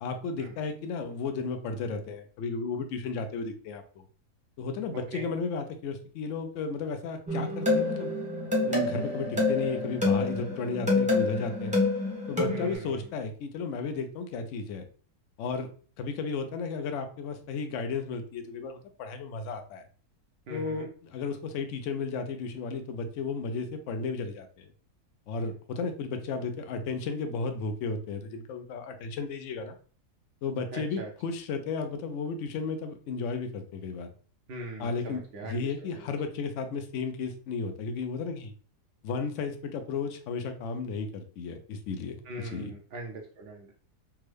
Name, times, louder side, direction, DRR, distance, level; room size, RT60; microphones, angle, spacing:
voice 1, 0.0-4.0 4.6-8.1 8.6-11.8 12.3-14.8 15.4-15.7 16.0-19.8 20.5-24.7 25.3-29.7 30.4-34.1 34.8-38.5 39.0-42.7, left 4 dB, 70° left, 6 dB, 0.7 m, -34 dB
voice 2, 4.9-5.3 12.5-13.1 20.5-20.9 30.7-31.1 34.5-36.1 42.2-43.7, right 1 dB, 75° right, 0 dB, 0.5 m, -41 dB
sound 1, 7.3-12.7, left 2 dB, 5° right, 0.7 m, -27 dB
3.5 x 2.1 x 3.2 m, 0.42 s
omnidirectional pair, 1.7 m